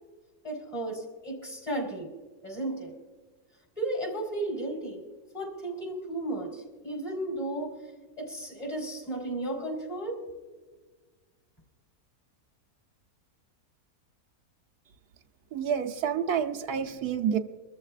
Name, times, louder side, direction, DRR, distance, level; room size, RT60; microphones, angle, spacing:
voice 1, 0.4-2.1 2.4-2.9 3.8-5.0 5.3-7.7 8.2-10.2, right 1 dB, 20° left, 1 dB, 4.4 m, -34 dB
voice 2, 15.5-17.4, right 8 dB, 85° right, 5 dB, 1.3 m, -28 dB
24.0 x 14.0 x 2.4 m, 1.3 s
omnidirectional pair, 1.6 m